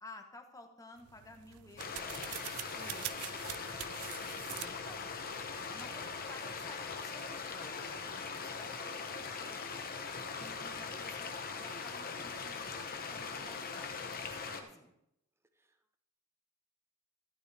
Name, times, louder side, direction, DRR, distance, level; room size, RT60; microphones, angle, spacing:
voice 1, 0.0-2.6 2.9-3.1 3.7-3.8 4.8-4.9 5.7-9.7 10.4-14.9, left 2 dB, 15° left, 4 dB, 1.1 m, -54 dB
sound 1, 1.0-6.3, right 14 dB, 90° right, 0.4 m, -46 dB
sound 2, 1.8-14.6, left 5 dB, 45° left, 1.0 m, -41 dB
voice 2, 2.7-3.2 4.5-4.7 15.6-15.8, equal, 10° right, 8 dB, 0.7 m, -58 dB
12.0 x 11.5 x 3.4 m, 0.79 s
head